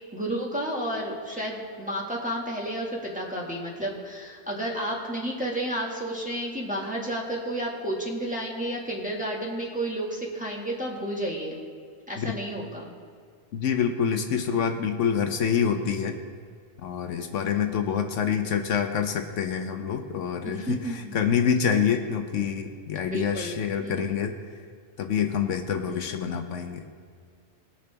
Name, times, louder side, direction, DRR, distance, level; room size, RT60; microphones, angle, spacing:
voice 1, 0.1-11.6 12.1-12.9 17.8-17.9 20.4-21.1 23.1-23.6 23.8-24.0 25.9-26.2, right 1 dB, 5° right, -4 dB, 1.7 m, -31 dB
voice 2, 13.5-16.2 16.8-24.3 25.0-26.9, left 7 dB, 75° left, 6 dB, 1.0 m, -26 dB
19.5 x 6.7 x 3.4 m, 2.1 s
omnidirectional pair, 1.3 m